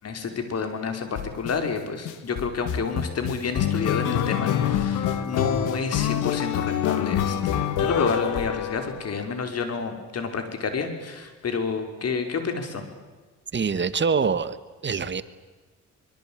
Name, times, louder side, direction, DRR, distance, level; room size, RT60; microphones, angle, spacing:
voice 1, 0.0-12.8, left 5 dB, 55° left, 7 dB, 5.6 m, -29 dB
sound 1, 1.2-1.5 2.1-9.2, left 9 dB, 90° left, 2.3 m, -26 dB
voice 2, 13.5-14.6 14.8-15.2, right 5 dB, 40° right, 14 dB, 1.6 m, -24 dB
24.5 x 23.5 x 9.1 m, 1.3 s
cardioid pair, 90°, 30 cm